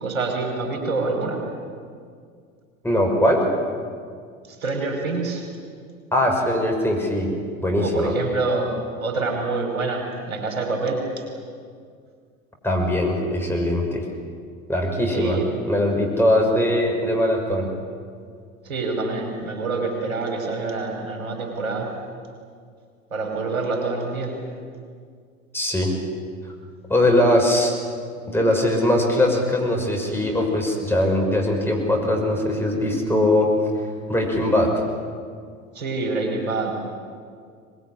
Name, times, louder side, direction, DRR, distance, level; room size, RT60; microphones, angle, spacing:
voice 1, 0.0-1.4 4.6-5.5 7.8-11.2 15.1-15.5 18.6-21.9 23.1-24.4 35.8-36.7, right 3 dB, 75° right, 2 dB, 5.4 m, -26 dB
voice 2, 2.8-3.4 6.1-7.3 7.6-8.1 12.6-14.0 14.7-15.4 15.7-17.7 25.5-25.9 26.9-27.7 28.3-33.5 34.1-34.8, left 1 dB, 5° left, 0 dB, 6.1 m, -21 dB
23.0 x 21.5 x 9.9 m, 2.1 s
hypercardioid pair, 80°, 41 cm